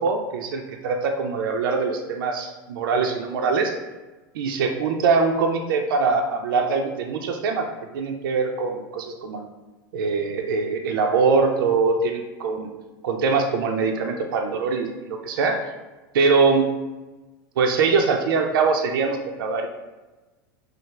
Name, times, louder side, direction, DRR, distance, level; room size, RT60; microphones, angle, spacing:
voice 1, 0.0-3.7 4.3-7.7 7.9-9.5 9.9-12.7 13.0-15.6 16.1-16.7 17.6-19.7, right 4 dB, 80° right, 3 dB, 0.4 m, -23 dB
5.2 x 2.0 x 3.7 m, 1.2 s
hypercardioid pair, 105°, 11 cm